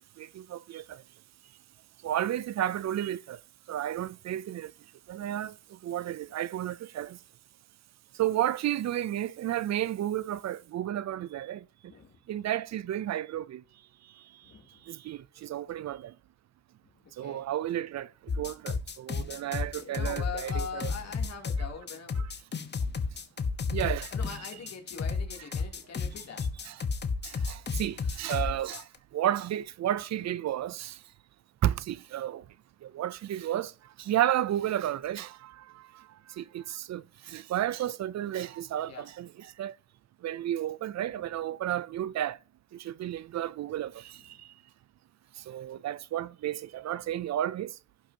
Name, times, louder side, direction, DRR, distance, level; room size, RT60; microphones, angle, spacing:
voice 1, 0.2-1.0 2.0-3.4 3.7-4.7 5.1-5.5 5.8-7.2 8.2-11.6 12.3-13.6 14.9-16.1 17.2-18.1 18.4-20.9 22.2-22.3 23.7-24.1 26.7-26.8 27.2-28.9 29.1-31.0 31.6-32.4 32.8-33.7 34.0-36.0 36.3-39.7 40.2-42.4 42.7-44.5 45.5-47.7, right 12 dB, 65° right, 0.5 m, -32 dB
voice 2, 11.8-12.2 14.4-14.8 17.2-17.4 19.8-22.3 24.1-26.7 38.9-39.1 41.2-41.3 44.2-44.3, left 6 dB, 60° left, 2.9 m, -43 dB
sound 1, 18.3-29.0, left 4 dB, 35° left, 1.0 m, -32 dB
16.0 x 5.8 x 2.8 m
wide cardioid pair, 125°, 29 cm